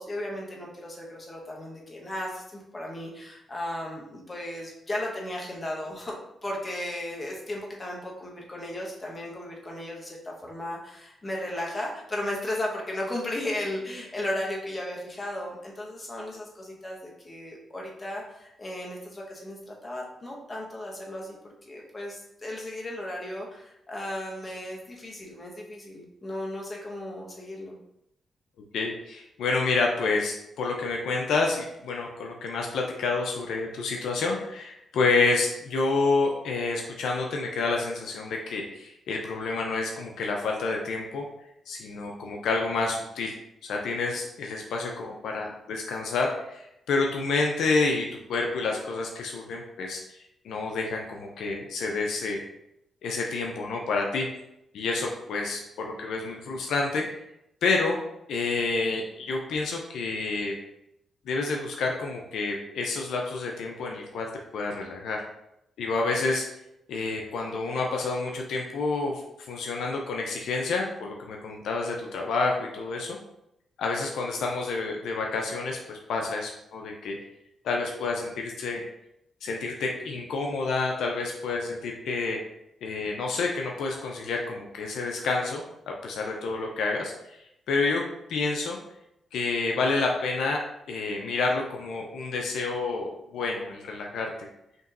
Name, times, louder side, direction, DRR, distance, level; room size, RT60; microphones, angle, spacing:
voice 1, 0.0-27.8, left 1 dB, 30° left, -2 dB, 1.2 m, -35 dB
voice 2, 28.7-41.2 41.7-43.3 43.6-50.2 50.4-52.4 53.0-54.3 54.7-57.0 57.6-58.0 58.3-60.5 61.3-65.2 65.8-66.5 66.9-73.2 73.8-77.2 77.6-78.8 79.4-82.4 82.8-87.4 87.7-88.0 88.3-88.8 89.3-90.6 90.9-94.5, left 3 dB, 85° left, 1 dB, 0.5 m, -29 dB
5.2 x 3.0 x 2.5 m, 0.83 s
cardioid pair, 70°, 0 cm